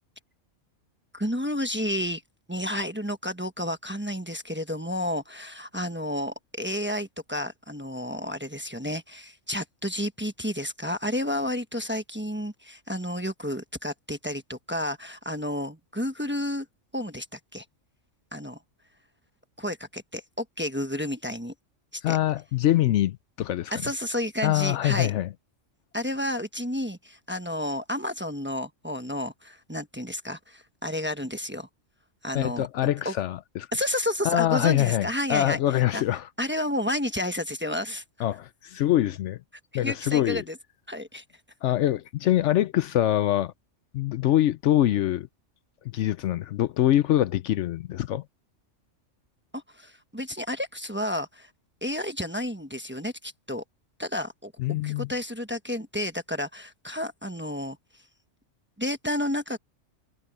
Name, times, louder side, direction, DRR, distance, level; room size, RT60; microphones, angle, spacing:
voice 1, 1.1-2.2 2.5-16.7 16.9-17.6 18.3-18.6 19.6-21.5 21.9-22.2 23.7-25.1 25.9-31.7 32.2-33.1 33.7-35.6 35.9-36.0 36.4-38.0 39.7-40.5 40.9-41.2 49.5-51.5 51.8-53.6 54.0-57.8 58.8-59.6, left 1 dB, 10° right, 1.0 m, -31 dB
voice 2, 22.0-23.9 24.4-25.3 32.3-33.7 34.2-36.3 38.2-39.4 39.7-40.4 41.6-43.5 43.9-45.3 45.8-48.3 54.6-55.1, left 13 dB, 70° left, 0.8 m, -24 dB
omnidirectional pair, 1.3 m